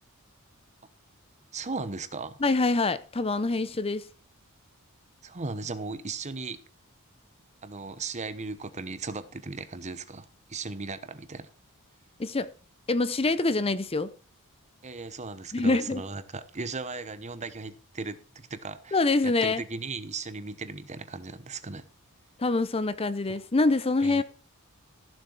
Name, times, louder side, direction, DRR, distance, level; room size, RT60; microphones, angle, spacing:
voice 1, 1.5-2.4 5.2-6.6 7.6-11.5 14.8-21.8 24.0-24.2, right 3 dB, 30° right, 0.9 m, -37 dB
voice 2, 2.4-4.1 12.2-12.5 12.9-14.1 15.5-16.0 18.9-19.6 22.4-24.2, left 3 dB, 25° left, 0.6 m, -25 dB
15.5 x 7.2 x 4.5 m
head